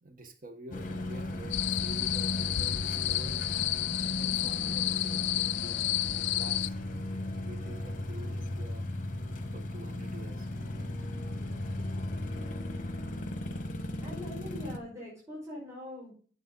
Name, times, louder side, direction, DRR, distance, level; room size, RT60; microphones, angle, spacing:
voice 1, 0.0-3.4 4.0-8.9 9.5-10.5, right 1 dB, 45° right, 6 dB, 1.2 m, -48 dB
sound 1, 0.7-14.8, left 1 dB, 40° left, 1.1 m, -36 dB
sound 2, 1.5-6.7, left 15 dB, 70° left, 0.4 m, -31 dB
voice 2, 11.0-12.0 14.0-16.1, left 1 dB, 15° right, -6 dB, 5.5 m, -44 dB
9.6 x 7.5 x 4.1 m, 0.42 s
head